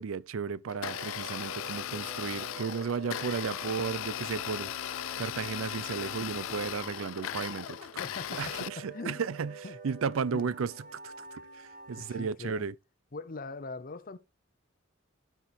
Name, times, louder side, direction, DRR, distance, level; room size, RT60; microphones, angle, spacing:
voice 1, 0.0-4.9 5.2-7.8 8.3-9.5 9.8-12.7, right 6 dB, 90° right, 0.5 m, -34 dB
Domestic sounds home sounds, 0.7-8.7, left 11 dB, 80° left, 0.4 m, -37 dB
sound 1, 0.7-12.3, right 4 dB, 45° right, 1.9 m, -49 dB
voice 2, 8.0-9.2 9.6-9.8 10.3-10.5 12.0-12.7 13.1-14.2, left 3 dB, 45° left, 0.8 m, -41 dB
11.5 x 4.6 x 4.3 m
head